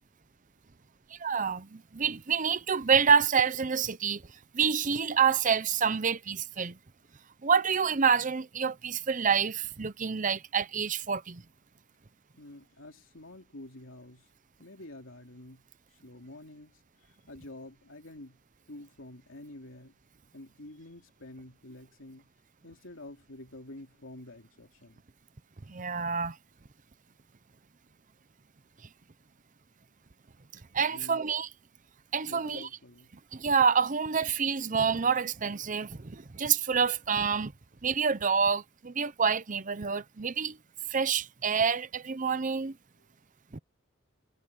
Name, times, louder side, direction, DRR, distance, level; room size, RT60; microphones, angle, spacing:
voice 1, 1.1-4.2 4.5-6.8 7.4-11.4 25.7-26.4 30.7-31.5 32.1-32.7 33.3-37.5 37.8-40.6 40.9-42.7 43.5-43.6, right 6 dB, 40° right, 0.7 m, -27 dB
voice 2, 12.4-14.3 14.6-15.7 16.0-16.8 17.1-18.4 18.7-20.0 20.3-22.3 22.6-25.0 30.9-31.3 32.3-33.1 43.0-43.1, left 1 dB, 70° left, 3.1 m, -48 dB
head